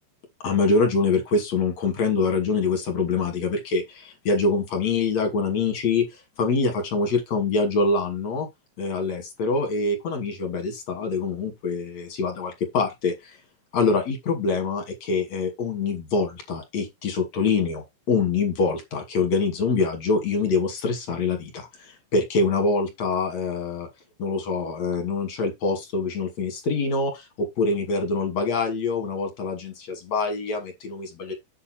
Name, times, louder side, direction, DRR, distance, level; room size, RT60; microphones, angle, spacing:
voice 1, 0.4-8.5 8.8-13.4 13.7-23.9 24.2-31.3, left 4 dB, 40° left, 3.2 m, -25 dB
8.4 x 4.5 x 4.5 m
omnidirectional pair, 5.5 m